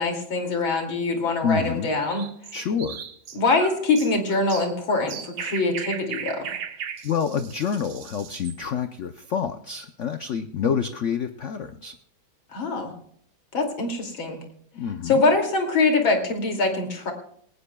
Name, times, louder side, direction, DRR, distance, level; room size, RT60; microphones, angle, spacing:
voice 1, 0.0-2.3 3.3-6.5 12.5-12.9 13.5-14.4 15.0-17.1, left 3 dB, 90° left, 3 dB, 3.4 m, -23 dB
voice 2, 1.4-1.9 2.5-3.0 7.0-11.9 14.7-15.2, left 7 dB, 65° left, 8 dB, 0.7 m, -27 dB
sound 1, 2.0-8.6, right 8 dB, 90° right, 1.9 m, -37 dB
19.5 x 18.0 x 2.3 m, 0.66 s
omnidirectional pair, 2.1 m